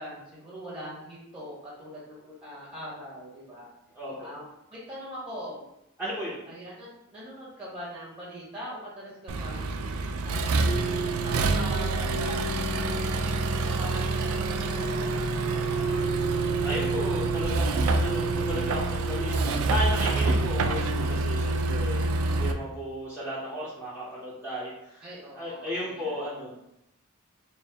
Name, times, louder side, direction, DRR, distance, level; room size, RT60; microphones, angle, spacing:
voice 1, 0.0-3.7 4.2-5.6 6.5-10.5 11.2-13.2 13.6-16.1 25.0-26.4, equal, 25° right, -7 dB, 1.2 m, -42 dB
voice 2, 3.9-4.3 6.0-6.4 16.6-25.0 25.3-26.5, equal, 5° right, -8 dB, 0.7 m, -34 dB
Accelerating revving vroom, 9.3-22.5, right 3 dB, 75° right, 0.4 m, -26 dB
4.5 x 2.1 x 3.4 m, 0.84 s
head